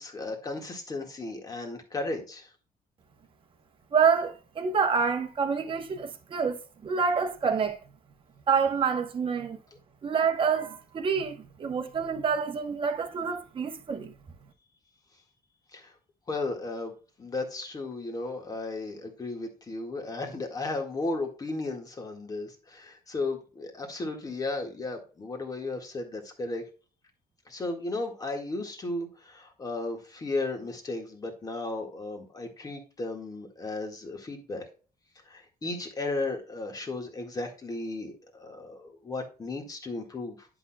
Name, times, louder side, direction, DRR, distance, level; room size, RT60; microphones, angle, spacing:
voice 1, 0.0-2.5 15.7-15.9 16.3-26.6 27.5-34.6 35.3-40.5, left 2 dB, 25° left, 1.8 m, -35 dB
voice 2, 3.9-7.8 8.5-9.6 10.0-14.1, right 6 dB, 35° right, 1.1 m, -27 dB
10.5 x 6.0 x 2.3 m
cardioid pair, 175°, 16 cm